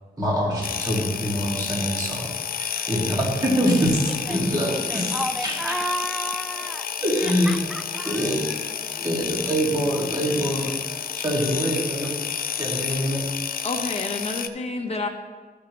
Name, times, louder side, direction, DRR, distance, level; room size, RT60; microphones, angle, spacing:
voice 1, 0.2-5.6 7.0-7.6 8.0-8.5 8.9-12.1 12.6-13.3, equal, 20° right, -4 dB, 2.0 m, -25 dB
sound 1, 0.6-14.5, left 8 dB, 65° left, 0.4 m, -30 dB
voice 2, 2.7-3.2 4.3-4.4 4.7-6.9 7.2-8.7, right 1 dB, ahead, 7 dB, 0.4 m, -33 dB
voice 3, 13.6-15.1, left 3 dB, 40° left, 1 dB, 1.0 m, -29 dB
13.0 x 6.6 x 3.0 m, 1.4 s
wide cardioid pair, 175°, 17 cm